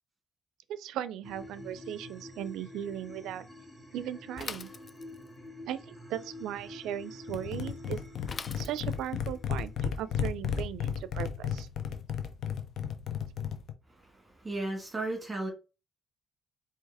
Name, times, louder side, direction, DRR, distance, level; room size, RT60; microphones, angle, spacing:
voice 1, 0.7-3.5 3.9-4.7 5.7-8.0 8.5-11.7, right 11 dB, 90° right, 0.4 m, -37 dB
sound 1, 1.2-10.2, left 1 dB, ahead, 1.6 m, -48 dB
Bicycle / Mechanisms, 4.4-5.4 8.3-9.2, left 5 dB, 40° left, 0.3 m, -42 dB
sound 2, 7.3-13.7, left 8 dB, 65° left, 0.7 m, -34 dB
voice 2, 13.9-15.5, right 2 dB, 20° right, 1.5 m, -35 dB
4.6 x 2.9 x 3.4 m
cardioid pair, 90°, 0 cm